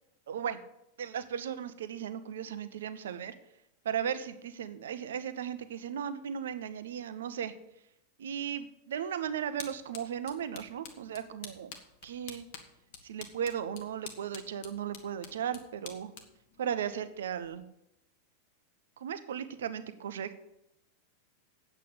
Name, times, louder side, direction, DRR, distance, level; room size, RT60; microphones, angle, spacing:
voice 1, 0.3-0.6 1.0-3.3 3.8-7.5 8.2-11.7 12.0-12.5 13.0-16.1 16.6-17.7 19.0-20.4, right 8 dB, 60° right, 11 dB, 0.9 m, -36 dB
sound 1, 8.9-17.6, left 6 dB, 50° left, 1.7 m, -50 dB
8.6 x 8.0 x 8.1 m, 0.83 s
figure-of-eight pair, 90°, 0 cm